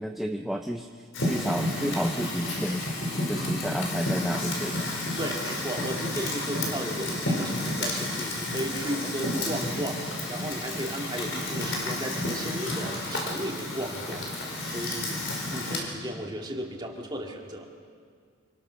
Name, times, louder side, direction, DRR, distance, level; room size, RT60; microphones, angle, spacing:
voice 1, 0.0-2.9 3.3-4.8, equal, ahead, 3 dB, 0.6 m, -31 dB
Fire, 1.1-15.8, left 1 dB, 65° left, 4.9 m, -31 dB
voice 2, 5.2-14.3 14.7-15.2 15.5-17.7, right 1 dB, 20° right, 0 dB, 2.3 m, -35 dB
26.0 x 20.0 x 6.4 m, 2.1 s
head